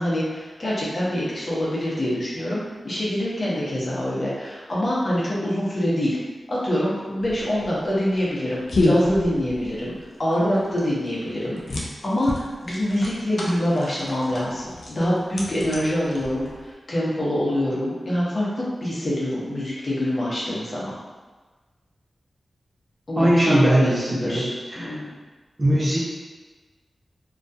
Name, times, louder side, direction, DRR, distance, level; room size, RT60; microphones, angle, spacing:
voice 1, 0.0-6.2 6.5-9.9 10.2-20.9 23.1-25.1, equal, 55° left, -7 dB, 0.8 m, -25 dB
sound 1, 7.2-16.7, left 1 dB, 75° left, 0.4 m, -29 dB
voice 2, 23.2-24.9 25.6-26.0, right 1 dB, 50° right, -7 dB, 0.8 m, -20 dB
2.3 x 2.2 x 2.6 m, 1.3 s
cardioid pair, 45°, 0 cm